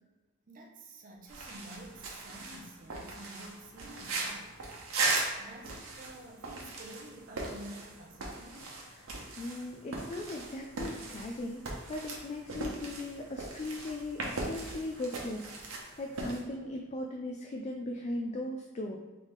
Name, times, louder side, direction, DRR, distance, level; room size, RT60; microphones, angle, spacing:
voice 1, 0.5-8.7, right 1 dB, 40° right, 0 dB, 0.6 m, -50 dB
sound 1, 1.3-16.4, right 3 dB, 85° right, 0.9 m, -39 dB
voice 2, 8.9-19.0, left 1 dB, 35° left, 2 dB, 0.3 m, -38 dB
3.9 x 3.3 x 3.5 m, 1.2 s
head